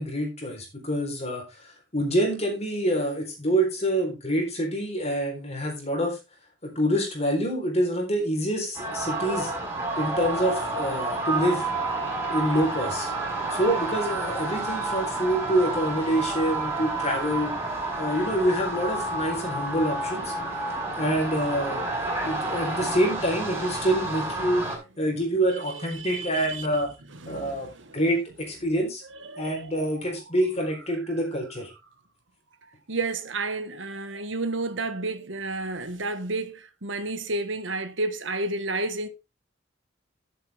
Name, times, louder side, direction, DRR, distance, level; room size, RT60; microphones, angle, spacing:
voice 1, 0.0-6.2 6.6-9.5 10.0-11.6 12.3-13.1 13.5-17.5 18.0-20.3 20.9-21.8 22.2-24.7 25.0-26.9 27.3-27.7 27.9-29.0 29.4-31.7, right 1 dB, 35° left, 4.0 m, -26 dB
sound 1, 8.7-24.8, right 2 dB, 15° right, 5.3 m, -30 dB
voice 2, 25.5-26.7 27.2-28.0 29.1-29.8 32.9-39.1, right 2 dB, 80° right, 1.5 m, -31 dB
11.5 x 7.9 x 3.5 m
head